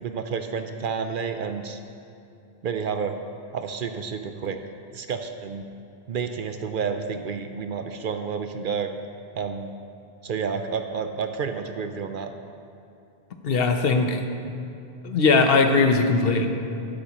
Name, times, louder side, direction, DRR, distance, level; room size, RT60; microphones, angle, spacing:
voice 1, 0.0-1.8 2.6-3.2 3.5-4.6 4.9-5.7 6.1-8.9 9.3-9.7 10.2-12.3, right 6 dB, 60° right, 7 dB, 0.7 m, -30 dB
voice 2, 13.4-14.2 15.0-16.5, left 4 dB, 65° left, 5 dB, 0.9 m, -19 dB
12.5 x 10.5 x 2.9 m, 2.7 s
omnidirectional pair, 1.1 m